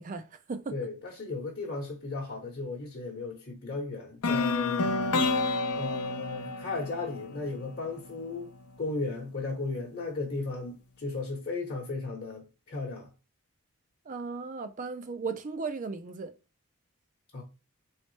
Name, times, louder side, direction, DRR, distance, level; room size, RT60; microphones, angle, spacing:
voice 1, 0.0-0.7 14.1-16.3, right 4 dB, 35° right, 0.4 m, -36 dB
voice 2, 0.7-4.9 5.7-8.5 8.8-13.1 17.3-17.4, left 3 dB, 45° left, 0.9 m, -35 dB
sound 1, 4.2-8.2, left 3 dB, 80° left, 0.6 m, -29 dB
4.1 x 3.2 x 3.1 m
head